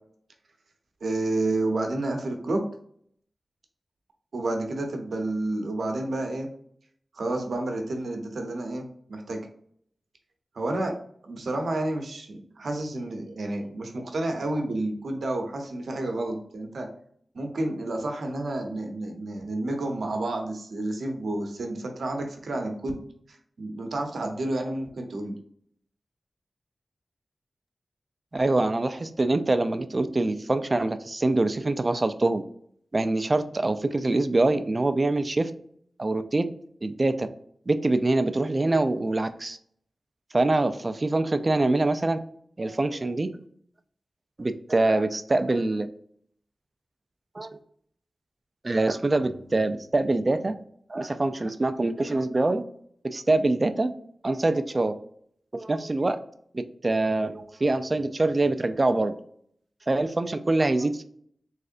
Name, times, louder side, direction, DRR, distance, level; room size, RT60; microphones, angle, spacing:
voice 1, 1.0-2.6 4.3-6.5 7.1-9.4 10.5-11.0 11.2-16.9 17.3-23.0 23.6-25.3, right 2 dB, 85° right, 3 dB, 0.7 m, -30 dB
voice 2, 28.3-32.4 32.9-35.5 36.0-36.5 36.8-37.3 37.7-39.6 40.3-42.2 42.6-43.3 44.4-45.9 47.4-47.6 48.6-50.6 50.9-52.6 53.1-53.9 54.2-54.9 55.5-56.2 56.5-59.1 59.9-61.0, right 2 dB, 35° right, 10 dB, 0.4 m, -24 dB
3.6 x 3.2 x 2.5 m, 0.63 s
wide cardioid pair, 75°, 0 cm